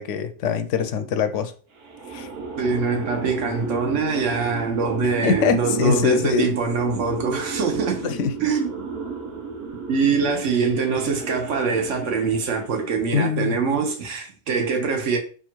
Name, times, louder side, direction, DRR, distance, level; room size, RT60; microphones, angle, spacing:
voice 1, 0.0-1.5 2.1-2.3 5.0-6.5 8.0-8.3 13.1-13.6, left 6 dB, 85° left, 0.9 m, -23 dB
sound 1, 1.8-12.9, right 4 dB, 60° right, 1.0 m, -34 dB
voice 2, 2.6-8.1 8.4-8.8 9.9-15.2, right 5 dB, 80° right, 1.2 m, -23 dB
3.6 x 2.4 x 4.4 m
omnidirectional pair, 1.2 m